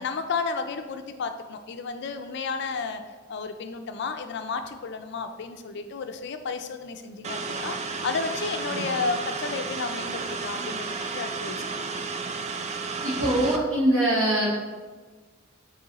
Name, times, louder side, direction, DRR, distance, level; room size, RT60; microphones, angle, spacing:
voice 1, 0.0-3.0 3.3-11.9, left 4 dB, 60° left, 8 dB, 0.4 m, -32 dB
sound 1, 7.2-13.6, right 4 dB, 35° right, 0.4 m, -32 dB
voice 2, 13.0-14.5, right 1 dB, 70° right, -9 dB, 1.5 m, -23 dB
7.6 x 3.1 x 4.0 m, 1.4 s
head